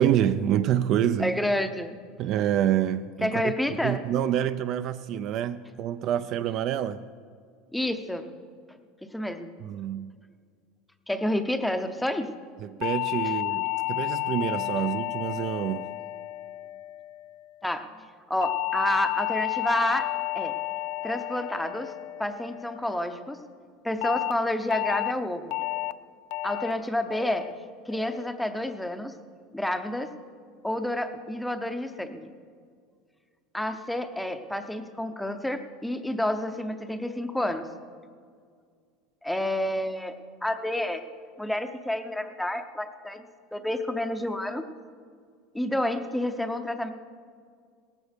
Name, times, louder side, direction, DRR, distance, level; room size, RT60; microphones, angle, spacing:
voice 1, 0.0-1.4 2.2-3.5 3.8-7.0 9.6-10.1 12.6-15.9, right 10 dB, 35° right, 0.4 m, -27 dB
voice 2, 1.2-1.9 3.2-4.0 7.7-8.2 9.1-9.5 11.1-12.3 17.6-17.9 18.3-20.1 20.3-20.5 21.0-21.9 22.2-23.4 23.8-25.6 26.4-27.5 27.9-29.2 29.5-30.1 30.6-32.3 33.5-37.7 39.2-40.2 40.4-41.0 41.4-43.2 43.5-44.6 45.5-46.9, left 1 dB, ahead, 0.6 m, -29 dB
sound 1, 12.8-17.3 18.4-22.9 24.0-24.3 24.7-25.1 25.5-25.9 26.3-26.7 27.1-27.5 27.9-28.3, left 20 dB, 50° left, 0.4 m, -31 dB
18.0 x 14.5 x 5.1 m
cardioid pair, 175°, 0 cm